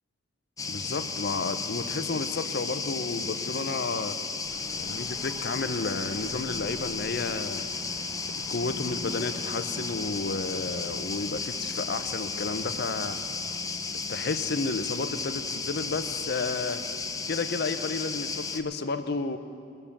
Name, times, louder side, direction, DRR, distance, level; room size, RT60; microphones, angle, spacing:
sound 1, 0.6-18.6, left 4 dB, 15° left, 0.5 m, -34 dB
voice 1, 0.7-4.2 4.7-7.7 8.5-13.2 14.1-16.8 17.3-19.4, left 3 dB, 55° left, 10 dB, 0.6 m, -32 dB
sound 2, 4.4-17.1, equal, 40° right, 2.3 m, -50 dB
20.5 x 6.8 x 7.2 m, 2.5 s
head